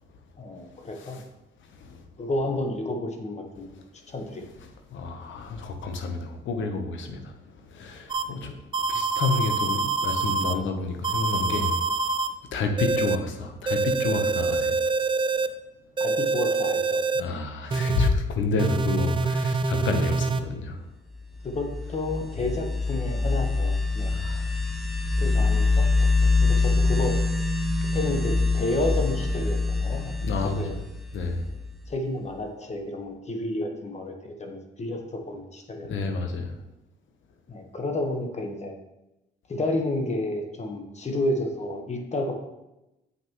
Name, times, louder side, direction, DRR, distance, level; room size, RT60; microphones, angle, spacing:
voice 1, 0.4-1.2 2.2-3.7 4.1-4.4 16.0-17.0 21.4-24.1 25.2-25.9 26.2-27.1 27.9-30.1 30.4-30.8 31.9-36.2 37.5-38.7 39.5-42.3, left 2 dB, 35° left, 3 dB, 1.2 m, -31 dB
voice 2, 1.7-2.0 4.9-8.6 8.9-12.0 12.5-14.8 17.1-20.8 24.1-24.5 30.2-30.8 31.1-31.5 35.8-36.5, left 3 dB, 75° left, 5 dB, 1.0 m, -29 dB
sound 1, 8.1-8.2 8.7-10.5 11.0-12.3 12.8-13.2 13.7-15.5 16.0-17.2 17.7-18.1 18.6-20.4, right 4 dB, 25° right, 0.5 m, -25 dB
sound 2, 21.3-31.9, left 3 dB, ahead, 0.8 m, -25 dB
7.9 x 5.9 x 3.1 m, 0.94 s
cardioid pair, 90°, 20 cm